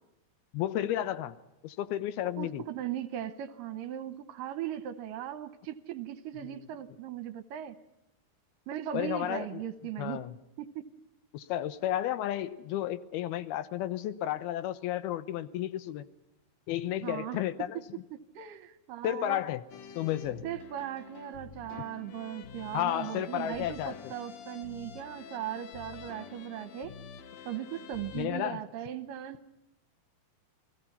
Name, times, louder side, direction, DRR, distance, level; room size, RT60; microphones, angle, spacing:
voice 1, 0.5-1.4 1.6-2.6 6.4-6.7 8.9-9.6 10.0-10.3 11.3-16.1 16.7-17.8 19.0-19.6 20.0-20.4 22.7-24.0 28.1-28.6, left 12 dB, 85° left, 14 dB, 2.9 m, -32 dB
voice 2, 2.4-7.8 8.7-10.2 10.6-10.8 17.0-17.4 17.7-17.8 18.1-19.4 20.4-26.9 27.5-29.4, right 11 dB, 75° right, 12 dB, 2.3 m, -38 dB
sound 1, 19.7-28.3, left 7 dB, 70° left, 1.7 m, -48 dB
29.0 x 19.5 x 5.5 m, 0.93 s
omnidirectional pair, 4.4 m